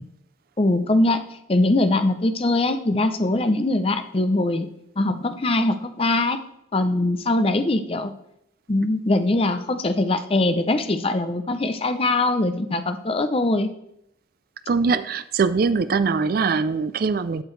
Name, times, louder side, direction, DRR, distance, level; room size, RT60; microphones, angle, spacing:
voice 1, 0.6-1.2 1.5-4.7 5.0-6.4 6.7-8.1 8.7-13.7, left 2 dB, 30° left, 9 dB, 0.6 m, -22 dB
voice 2, 14.7-17.4, right 5 dB, 50° right, 12 dB, 0.4 m, -22 dB
11.5 x 6.8 x 3.2 m, 0.78 s
head